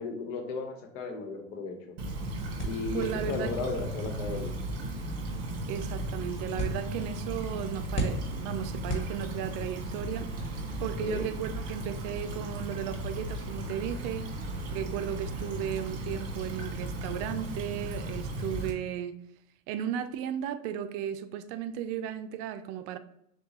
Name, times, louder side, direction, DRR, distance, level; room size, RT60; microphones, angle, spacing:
voice 1, 0.0-2.0 2.6-4.5 11.0-11.3, left 4 dB, 70° left, 1.1 m, -35 dB
Stream / Trickle dribble, 2.0-18.7, right 1 dB, 40° right, 1.3 m, -36 dB
sound 1, 2.6-9.7, right 1 dB, 30° left, 1.6 m, -39 dB
voice 2, 2.9-3.5 5.7-14.3 14.7-19.2 19.7-23.0, right 9 dB, 55° right, 0.5 m, -35 dB
6.3 x 2.3 x 3.0 m
hypercardioid pair, 85°, 40 cm